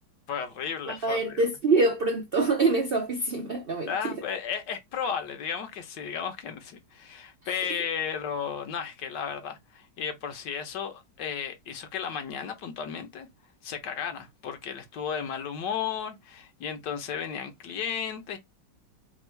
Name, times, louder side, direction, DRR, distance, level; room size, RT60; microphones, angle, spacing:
voice 1, 0.3-1.4 3.9-13.3 13.6-18.4, left 7 dB, 75° left, 1.4 m, -34 dB
voice 2, 0.9-4.2, right 3 dB, 80° right, 0.5 m, -25 dB
3.5 x 2.3 x 4.4 m
omnidirectional pair, 1.9 m